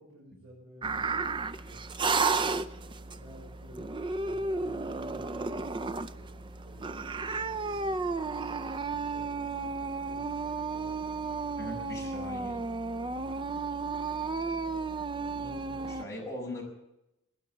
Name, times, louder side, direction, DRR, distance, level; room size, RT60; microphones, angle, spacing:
voice 1, 0.0-1.9 2.7-7.8 8.8-11.5 13.1-13.4 15.1-16.2, right 1 dB, 75° right, -6 dB, 6.2 m, -54 dB
sound 1, 0.8-16.0, right 4 dB, 20° right, 0.5 m, -33 dB
sound 2, 7.3-12.3, equal, 35° left, 4.2 m, -62 dB
voice 2, 11.6-12.6 15.8-16.6, left 1 dB, 15° left, -2 dB, 5.4 m, -40 dB
18.5 x 10.0 x 7.2 m, 0.87 s
head